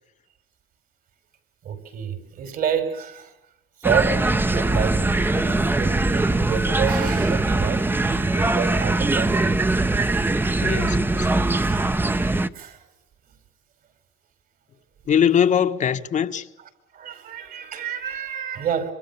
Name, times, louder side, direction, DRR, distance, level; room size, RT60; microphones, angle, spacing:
voice 1, 1.6-3.3 3.8-7.9 8.4-9.4 11.5-11.9 12.5-12.8 16.9-18.9, right 7 dB, 60° right, 5.2 m, -29 dB
sound 1, 3.8-12.5, right 2 dB, 10° right, 1.0 m, -21 dB
voice 2, 10.6-11.3 15.1-16.5, left 8 dB, 45° left, 1.4 m, -21 dB
27.0 x 24.0 x 7.1 m
cardioid pair, 110°, 17 cm